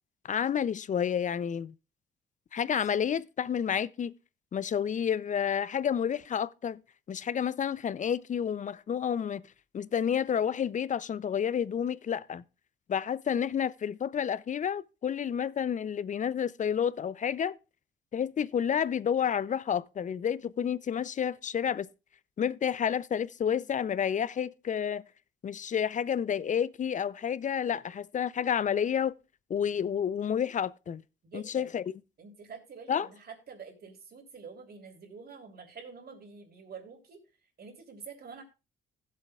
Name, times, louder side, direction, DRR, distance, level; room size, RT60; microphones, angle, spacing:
voice 1, 0.2-1.7 2.5-4.1 4.5-6.8 7.1-9.4 9.7-12.4 12.9-17.6 18.1-21.9 22.4-25.0 25.4-29.1 29.5-31.0 31.3-31.8 32.9-33.1, left 8 dB, 40° left, 0.5 m, -30 dB
voice 2, 31.2-31.8 32.2-37.2 37.6-38.4, right 5 dB, 50° right, 3.2 m, -47 dB
16.0 x 7.7 x 2.3 m
cardioid pair, 90°, 20 cm